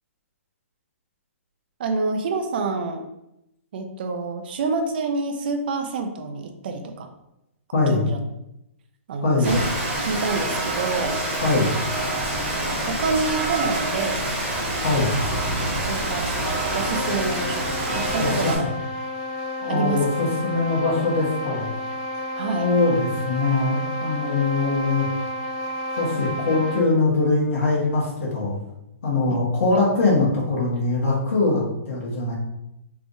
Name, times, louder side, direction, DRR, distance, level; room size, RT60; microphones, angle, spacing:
voice 1, 1.8-3.0 3.7-7.1 7.9-8.2 9.1-9.6 10.0-11.2 12.3-14.3 15.8-18.7 19.7-20.0 22.4-22.7 29.3-29.4 29.7-29.8, right 4 dB, 40° right, 6 dB, 0.5 m, -27 dB
voice 2, 7.7-8.0 9.2-9.6 11.4-11.8 14.8-15.2 18.2-18.5 19.6-21.7 22.6-25.1 26.0-28.6 29.0-32.3, left 3 dB, 60° left, -5 dB, 1.3 m, -22 dB
Rain, 9.4-18.6, right 1 dB, 15° right, 0.8 m, -26 dB
sound 1, 16.7-27.0, left 1 dB, 20° left, 0.4 m, -31 dB
3.4 x 3.3 x 2.6 m, 0.85 s
hypercardioid pair, 165°, 8 cm